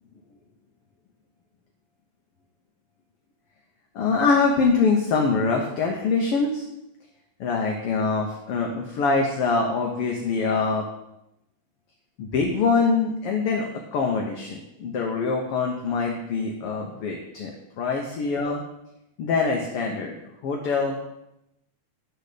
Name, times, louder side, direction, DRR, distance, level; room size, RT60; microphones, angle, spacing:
voice 1, 3.9-6.6 7.4-10.8 12.2-18.6 19.2-20.2 20.4-21.0, left 4 dB, 65° left, 1 dB, 1.5 m, -24 dB
9.9 x 4.0 x 6.6 m, 0.86 s
omnidirectional pair, 3.5 m